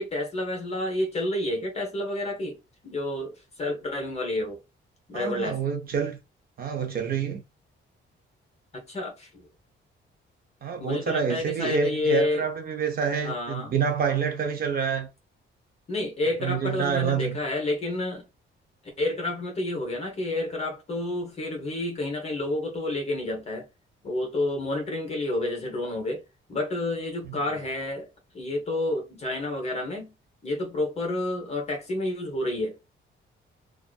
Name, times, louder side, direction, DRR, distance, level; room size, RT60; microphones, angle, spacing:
voice 1, 0.0-2.6 2.8-4.6 5.1-5.6 8.7-9.5 10.8-12.4 13.2-13.8 15.9-18.3 19.0-23.7 24.0-26.2 26.5-28.1 28.3-30.1 30.4-32.9, left 1 dB, 30° left, 0.9 m, -29 dB
voice 2, 5.1-6.2 6.6-7.4 10.6-15.1 16.4-17.4 27.2-27.4, right 6 dB, 45° right, 0.6 m, -27 dB
2.6 x 2.4 x 2.3 m
wide cardioid pair, 175°, 21 cm